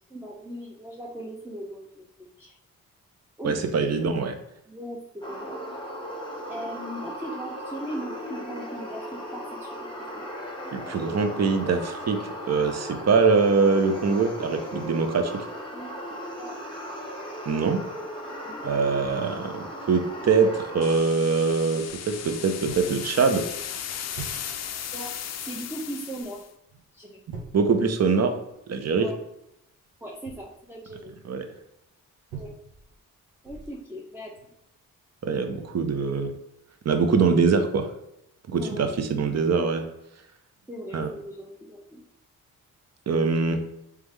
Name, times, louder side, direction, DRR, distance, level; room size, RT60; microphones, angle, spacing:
voice 1, 0.1-2.5 3.4-4.1 4.7-5.6 6.5-9.9 10.1-10.3 15.7-15.9 16.4-16.5 18.4-18.5 24.9-25.1 25.4-26.4 26.9-27.1 29.0-29.2 30.0-31.1 32.3-32.5 33.4-34.3 38.5-38.8 40.7-42.0, equal, 5° right, -3 dB, 0.7 m, -38 dB
voice 2, 3.4-4.3 10.7-12.2 12.5-15.4 17.5-17.8 18.6-23.4 27.5-28.4 28.7-29.1 31.2-31.5 35.2-36.3 36.8-37.9 38.5-39.9 40.9-41.1 43.1-43.6, right 4 dB, 45° right, 7 dB, 0.7 m, -23 dB
sound 1, 5.2-21.0, equal, 15° left, 1.1 m, -37 dB
sound 2, 20.8-26.5, left 9 dB, 45° left, 0.4 m, -36 dB
sound 3, 22.6-23.0 23.4-23.6 24.1-24.8 26.1-26.4 26.7-26.8 27.3-28.5 30.1-31.1 32.3-33.0 33.4-33.9 34.4-34.6, right 5 dB, 75° right, 1.0 m, -44 dB
3.4 x 3.2 x 3.2 m, 0.81 s
supercardioid pair, 45°, 36 cm